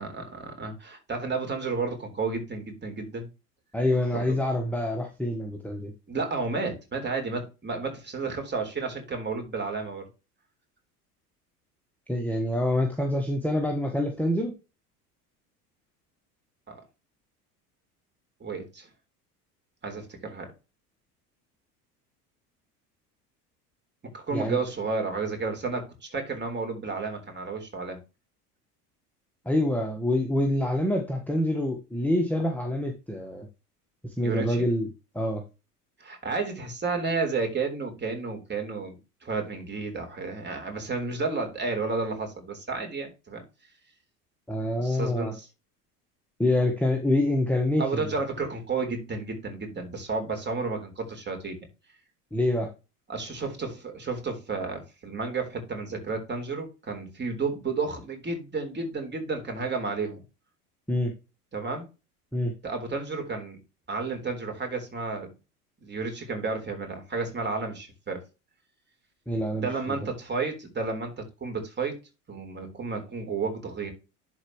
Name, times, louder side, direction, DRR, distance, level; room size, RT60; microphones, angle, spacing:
voice 1, 0.0-3.3 4.1-4.4 6.1-10.0 16.7-16.8 18.4-18.9 19.8-20.5 24.1-28.0 34.2-34.7 36.0-39.0 39.2-43.4 44.8-45.5 47.8-51.6 53.1-60.2 61.5-61.9 62.6-63.6 63.9-65.3 65.8-68.2 69.5-72.0 72.3-73.9, right 4 dB, 20° right, 3 dB, 3.8 m, -32 dB
voice 2, 3.7-5.9 12.1-14.5 24.3-24.6 29.4-33.5 34.0-34.9 35.1-35.4 44.5-45.3 46.4-48.1 52.3-52.7 60.9-61.1 62.3-62.5 69.3-70.0, left 1 dB, 5° left, 2 dB, 1.4 m, -26 dB
11.5 x 4.6 x 3.1 m, 0.28 s
hypercardioid pair, 80°, 46 cm